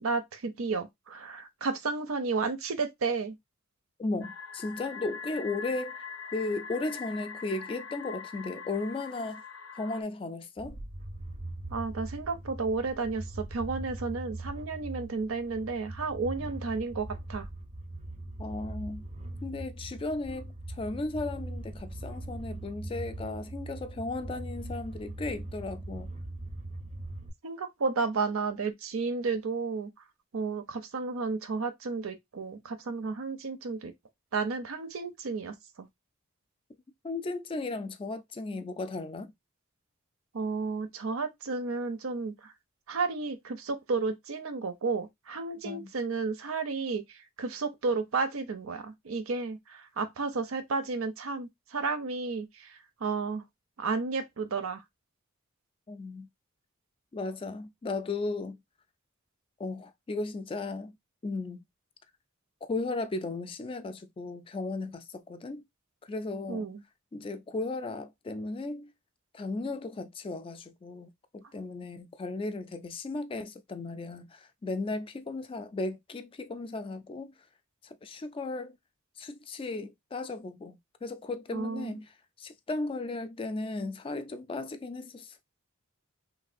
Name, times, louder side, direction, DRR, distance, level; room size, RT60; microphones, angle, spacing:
voice 1, 0.0-3.3 11.7-17.5 27.4-29.9 30.3-33.9 34.3-35.9 40.3-42.5 42.9-47.0 47.4-52.7 53.0-53.4 53.8-54.8 66.5-66.8 81.5-82.0, right 4 dB, 80° right, 0.6 m, -32 dB
voice 2, 4.0-6.0 6.3-9.4 9.7-10.8 18.4-19.0 19.4-26.1 37.0-39.3 45.6-45.9 55.9-56.3 57.1-58.6 59.6-60.9 61.2-61.6 62.6-65.6 66.0-66.7 67.1-68.9 69.3-77.3 77.8-78.8 79.2-85.4, left 3 dB, 25° left, 0.3 m, -36 dB
sound 1, 4.2-10.0, left 5 dB, 85° left, 0.5 m, -42 dB
sound 2, 10.6-27.3, right 2 dB, 30° right, 0.5 m, -41 dB
3.2 x 2.4 x 2.5 m
head